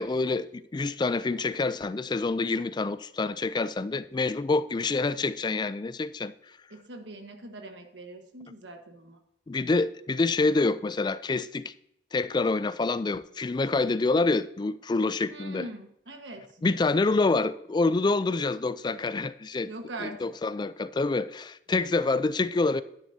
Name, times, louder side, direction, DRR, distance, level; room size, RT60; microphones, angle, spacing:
voice 1, 0.0-6.3 9.5-11.7 12.1-15.7 16.6-19.7 20.0-22.8, left 3 dB, 25° left, 0.3 m, -27 dB
voice 2, 6.7-9.2 15.3-16.6 19.7-20.3, right 2 dB, 90° right, 1.4 m, -42 dB
10.5 x 10.5 x 2.7 m
head